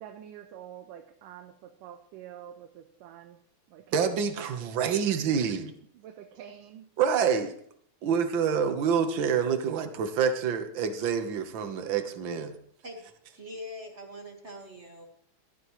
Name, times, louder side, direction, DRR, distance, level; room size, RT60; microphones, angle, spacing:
voice 1, 0.0-3.4 3.7-4.0 4.6-4.8 5.9-6.9, right 10 dB, 90° right, 5 dB, 2.5 m, -47 dB
voice 2, 3.9-5.7 7.0-7.6 8.0-12.6, right 7 dB, 65° right, 7 dB, 1.2 m, -27 dB
voice 3, 12.8-15.1, left 1 dB, 35° right, 2 dB, 1.2 m, -43 dB
18.5 x 13.5 x 3.1 m, 0.64 s
omnidirectional pair, 3.7 m